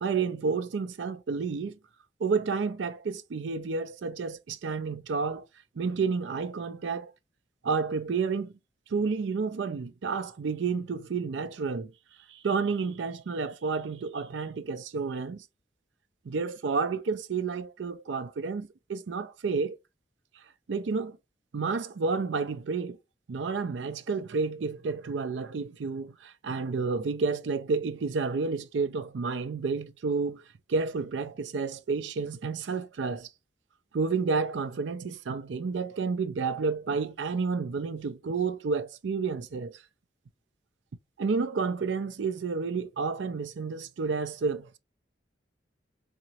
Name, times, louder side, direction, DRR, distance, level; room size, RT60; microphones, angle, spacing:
voice 1, 0.0-1.8 2.2-5.5 5.8-7.1 7.6-8.5 8.9-11.9 12.3-15.4 16.3-19.8 20.7-21.2 21.5-23.0 23.3-30.4 30.7-33.3 33.9-39.8 41.2-44.8, right 4 dB, 85° right, 0.4 m, -30 dB
3.6 x 2.9 x 2.8 m
head